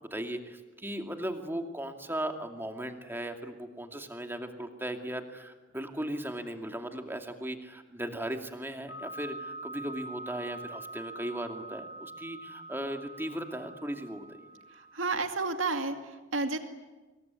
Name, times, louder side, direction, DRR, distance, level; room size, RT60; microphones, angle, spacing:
voice 1, 0.0-14.3, right 1 dB, 10° right, 5 dB, 2.4 m, -37 dB
sound 1, 8.9-15.0, right 2 dB, 50° left, 2.3 m, -44 dB
voice 2, 14.7-16.6, right 3 dB, 80° right, 6 dB, 2.4 m, -31 dB
26.0 x 22.5 x 9.5 m, 1.2 s
head